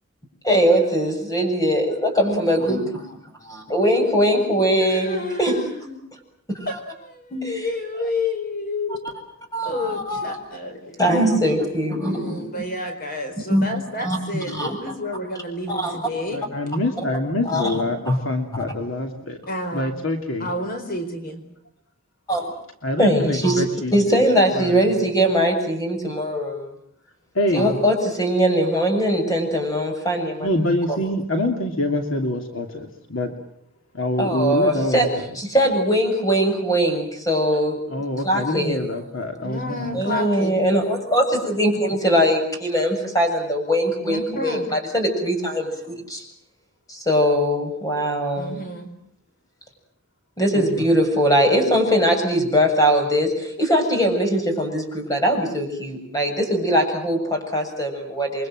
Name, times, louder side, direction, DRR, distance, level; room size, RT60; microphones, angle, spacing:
voice 1, 0.4-3.0 3.5-5.5 6.5-6.7 7.3-7.7 9.5-10.3 11.0-12.5 13.5-13.7 14.0-14.9 15.7-16.0 17.5-17.7 18.1-18.2 22.3-22.5 23.0-23.6 23.9-26.7 27.5-30.5 30.9-31.0 34.2-35.1 35.3-37.8 38.2-38.8 39.9-46.3 46.9-48.6 50.4-58.5, equal, 15° left, 4 dB, 7.3 m, -21 dB
voice 2, 4.8-6.0 6.7-9.1 9.6-11.0 12.0-16.4 19.5-19.9 20.4-21.4 39.4-40.6 44.0-44.7 48.3-48.9, left 1 dB, 45° left, 5 dB, 4.7 m, -30 dB
voice 3, 16.3-19.4 19.7-20.5 22.8-24.2 24.6-24.8 27.3-27.8 30.4-33.3 33.9-35.2 37.9-40.0 50.5-50.8, left 1 dB, 70° left, 4 dB, 2.8 m, -25 dB
29.5 x 24.0 x 7.7 m, 0.67 s
head